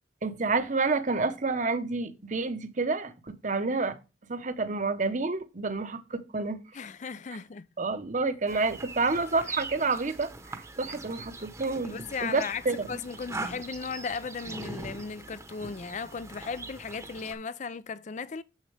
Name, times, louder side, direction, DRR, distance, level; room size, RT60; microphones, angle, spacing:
voice 1, 0.2-4.0 4.3-6.6 7.8-12.9, right 3 dB, 45° right, 0.9 m, -29 dB
voice 2, 6.7-7.7 11.8-12.6 12.9-18.4, left 5 dB, 45° left, 0.4 m, -36 dB
sound 1, 8.5-17.3, right 2 dB, 15° right, 1.0 m, -42 dB
7.5 x 6.5 x 3.4 m
head